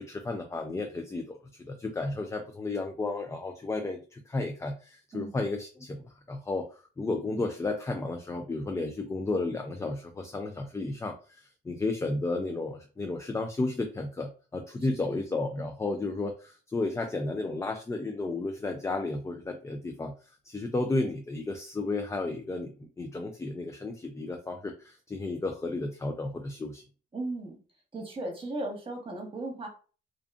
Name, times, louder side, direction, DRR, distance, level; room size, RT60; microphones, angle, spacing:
voice 1, 0.0-26.8, left 2 dB, 15° left, 4 dB, 0.3 m, -33 dB
voice 2, 27.1-27.6 27.9-29.7, right 2 dB, 25° right, 2 dB, 1.1 m, -36 dB
2.5 x 2.3 x 2.3 m, 0.37 s
cardioid pair, 90°, 20 cm